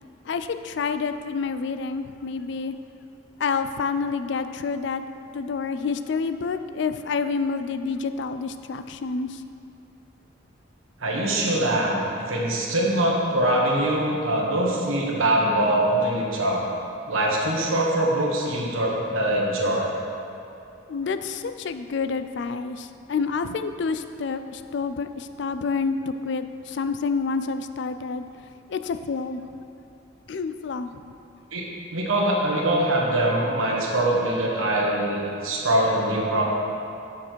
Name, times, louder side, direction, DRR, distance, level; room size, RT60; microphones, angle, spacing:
voice 1, 0.3-2.7 3.4-5.0 5.3-9.4 20.9-28.2 28.7-29.6 30.3-31.0, left 5 dB, 60° left, 10 dB, 0.3 m, -28 dB
voice 2, 11.0-16.7 17.1-19.9 31.5-31.6 31.9-36.4, right 1 dB, 90° right, -3 dB, 1.4 m, -23 dB
7.3 x 6.8 x 4.6 m, 2.7 s
head